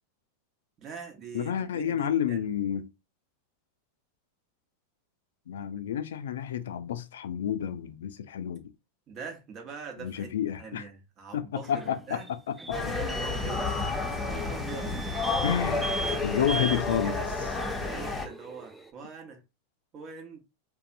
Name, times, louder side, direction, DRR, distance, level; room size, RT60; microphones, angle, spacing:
voice 1, 0.8-2.5 9.1-10.3 10.6-12.3 12.9-13.7 14.3-15.0 16.0-17.3 17.8-19.4 19.9-20.4, right 5 dB, 40° right, 1.0 m, -43 dB
voice 2, 1.3-2.9 5.5-8.7 10.0-10.8 11.3-12.2 12.5-12.8 15.4-15.9 16.2-17.1, left 9 dB, 75° left, 0.4 m, -30 dB
sound 1, 11.6-18.9, right 2 dB, 10° right, 0.4 m, -39 dB
sound 2, 12.7-18.3, left 3 dB, 15° left, 0.7 m, -31 dB
2.6 x 2.2 x 2.6 m
hypercardioid pair, 100°, 0 cm